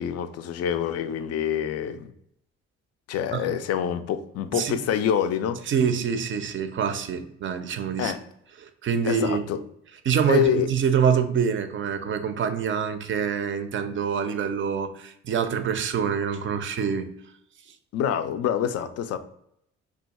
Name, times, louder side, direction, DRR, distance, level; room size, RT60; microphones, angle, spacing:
voice 1, 0.0-2.1 3.1-5.6 8.0-8.2 9.1-9.6 10.3-10.7 17.9-19.2, left 8 dB, 55° left, 0.4 m, -26 dB
voice 2, 5.7-8.1 8.6-9.5 10.0-17.1, right 7 dB, 40° right, 0.4 m, -25 dB
2.4 x 2.3 x 4.0 m
supercardioid pair, 65°, 30 cm